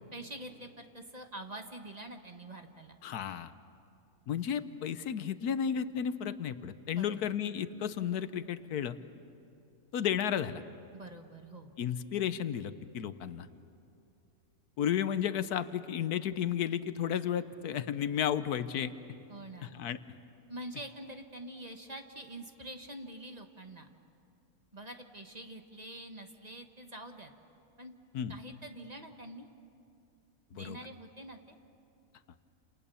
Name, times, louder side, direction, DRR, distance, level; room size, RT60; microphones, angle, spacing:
voice 1, 0.1-3.0 6.9-7.3 10.9-11.7 19.3-19.7 20.5-23.9 24.7-27.3 27.8-27.9 28.3-29.5 30.5-31.5, right 1 dB, 25° right, 5 dB, 1.4 m, -46 dB
voice 2, 3.0-3.5 4.3-9.0 9.9-10.6 11.8-13.5 14.8-18.9 19.6-20.0 28.1-28.4 30.6-30.8, left 9 dB, 85° left, 12 dB, 1.4 m, -33 dB
29.5 x 28.0 x 7.0 m, 2.6 s
omnidirectional pair, 1.6 m